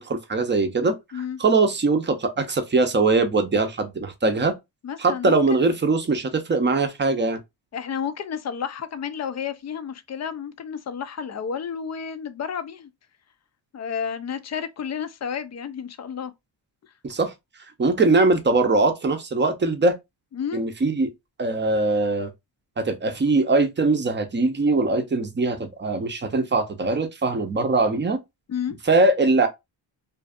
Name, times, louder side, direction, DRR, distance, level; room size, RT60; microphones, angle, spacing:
voice 1, 0.1-4.6 5.0-7.4 17.0-17.3 17.8-20.0 20.5-21.1 21.4-22.3 22.8-28.2 28.8-29.5, right 3 dB, 25° right, 0.6 m, -21 dB
voice 2, 4.8-5.7 7.7-12.9 13.7-16.3 20.3-20.6 28.5-28.8, left 7 dB, 35° left, 0.4 m, -31 dB
2.6 x 2.4 x 2.4 m
cardioid pair, 70°, 48 cm